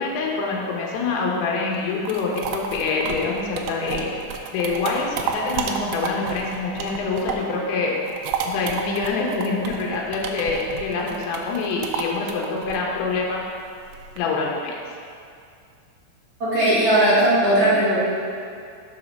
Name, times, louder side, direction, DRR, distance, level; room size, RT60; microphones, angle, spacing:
voice 1, 0.0-4.1 4.5-8.0 8.5-13.4 14.2-14.8, left 4 dB, 75° left, -2 dB, 3.2 m, -25 dB
sound 1, 1.7-7.6 7.9-14.2, right 6 dB, 80° right, 2.5 m, -31 dB
voice 2, 16.4-18.0, right 1 dB, 45° right, -11 dB, 2.2 m, -18 dB
7.0 x 5.6 x 5.4 m, 2.4 s
omnidirectional pair, 5.4 m